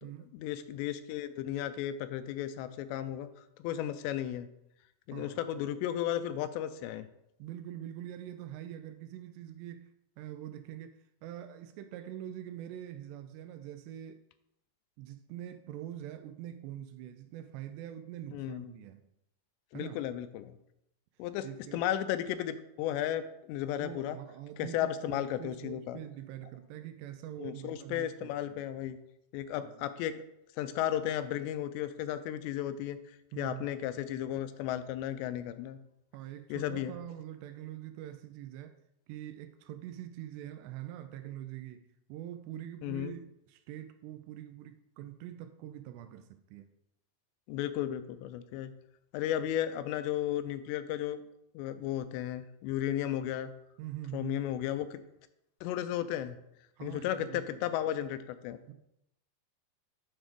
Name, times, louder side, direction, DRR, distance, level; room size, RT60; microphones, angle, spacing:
voice 1, 0.0-3.3 3.6-4.5 5.1-7.1 18.3-18.7 19.7-20.6 21.2-21.5 21.7-24.2 24.6-26.0 27.4-29.0 29.3-30.1 30.6-33.0 33.4-35.8 36.5-37.0 42.8-43.1 47.5-48.7 49.1-51.2 51.5-53.5 54.1-55.0 55.6-56.4 56.8-58.6, left 11 dB, 85° left, 2.7 m, -34 dB
voice 2, 5.1-5.4 7.4-9.9 10.2-14.2 15.0-19.1 19.7-20.0 21.4-21.8 23.6-28.6 29.6-29.7 33.3-33.9 36.1-38.8 39.1-46.7 53.8-54.4 56.8-57.7 58.7-58.8, right 12 dB, 85° right, 2.6 m, -44 dB
8.9 x 4.1 x 5.1 m
omnidirectional pair, 5.1 m